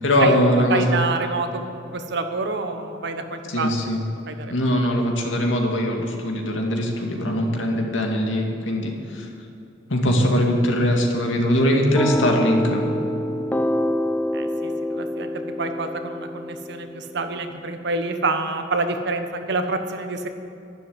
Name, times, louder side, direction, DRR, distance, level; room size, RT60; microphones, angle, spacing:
voice 1, 0.0-1.0 3.4-4.0 4.5-9.3 9.9-12.8, equal, 90° left, 1 dB, 2.2 m, -21 dB
voice 2, 0.7-3.7 4.3-4.5 14.3-15.3 15.6-20.3, right 3 dB, 65° right, 7 dB, 1.2 m, -27 dB
sound 1, 11.9-17.4, left 1 dB, 10° left, 0.4 m, -26 dB
11.5 x 11.0 x 8.0 m, 2.7 s
head